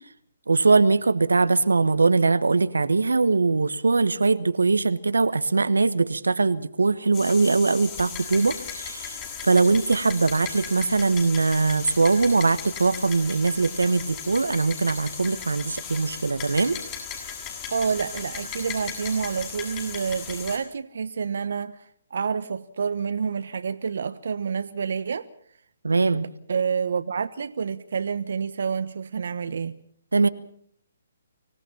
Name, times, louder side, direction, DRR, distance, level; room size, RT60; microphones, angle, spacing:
voice 1, 0.5-9.2 9.4-16.8 25.8-26.3 30.1-30.3, right 3 dB, 85° right, 1.2 m, -21 dB
sound 1, 7.1-20.6, left 7 dB, 25° left, 7.5 m, -36 dB
voice 2, 17.7-25.3 26.5-29.8, right 6 dB, 70° right, 1.0 m, -28 dB
25.0 x 17.0 x 7.2 m
hypercardioid pair, 140°, 0 cm